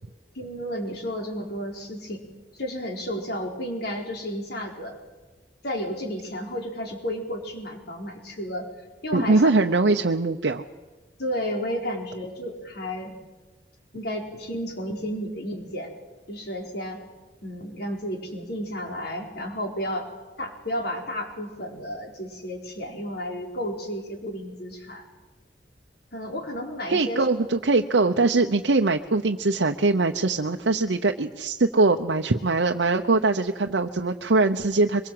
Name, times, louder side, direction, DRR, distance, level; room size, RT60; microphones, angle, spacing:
voice 1, 0.3-2.2 2.6-4.9 5.6-8.7 9.0-9.5 11.2-13.2 13.9-15.9 16.3-17.0 17.4-20.1 20.4-25.0 26.1-27.3, equal, 65° left, 2 dB, 4.4 m, -32 dB
voice 2, 9.1-10.6 26.9-35.1, right 3 dB, 80° right, 3 dB, 0.8 m, -22 dB
24.0 x 22.5 x 7.8 m, 1.2 s
head